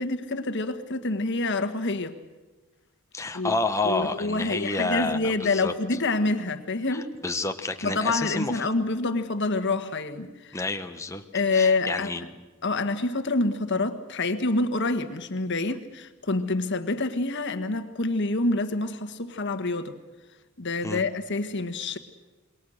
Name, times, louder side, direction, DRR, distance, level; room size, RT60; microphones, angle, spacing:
voice 1, 0.0-2.2 3.3-3.5 3.8-7.1 7.8-10.6 11.3-12.1 12.6-19.9 20.6-22.0, left 3 dB, 55° left, 8 dB, 1.6 m, -27 dB
voice 2, 3.1-5.7 6.9-8.7 10.5-11.2 11.5-12.3 20.8-21.0, left 2 dB, 15° left, 6 dB, 1.1 m, -29 dB
27.5 x 22.0 x 6.5 m, 1.2 s
head